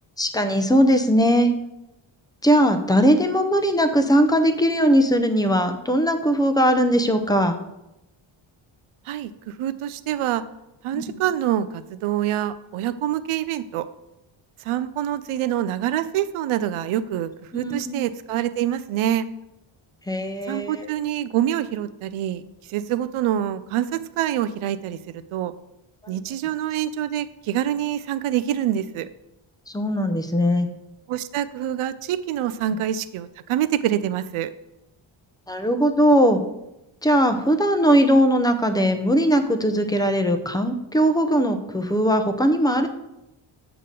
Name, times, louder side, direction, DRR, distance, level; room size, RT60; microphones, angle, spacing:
voice 1, 0.2-1.5 2.4-7.6 10.9-11.1 17.5-18.0 20.1-20.9 29.7-30.7 35.5-36.4 37.0-42.9, equal, 10° left, 7 dB, 0.6 m, -19 dB
voice 2, 9.1-10.4 10.8-13.9 14.6-19.3 20.5-22.4 22.7-25.5 26.1-29.1 31.1-34.5, right 11 dB, 85° right, 14 dB, 0.6 m, -26 dB
8.1 x 3.8 x 6.6 m, 0.90 s
wide cardioid pair, 130°, 48 cm